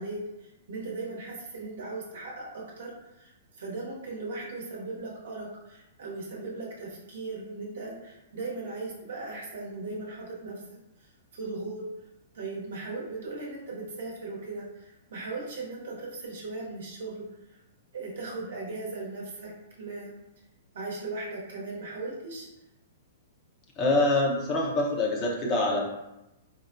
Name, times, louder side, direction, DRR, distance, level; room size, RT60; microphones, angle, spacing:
voice 1, 0.0-2.9 3.2-11.9 12.3-17.6 17.9-20.2 20.7-22.5, right 3 dB, 60° right, -3 dB, 0.9 m, -38 dB
voice 2, 23.8-25.8, left 2 dB, 30° left, -2 dB, 0.7 m, -25 dB
4.4 x 2.1 x 2.5 m, 0.94 s
figure-of-eight pair, 110°, 0 cm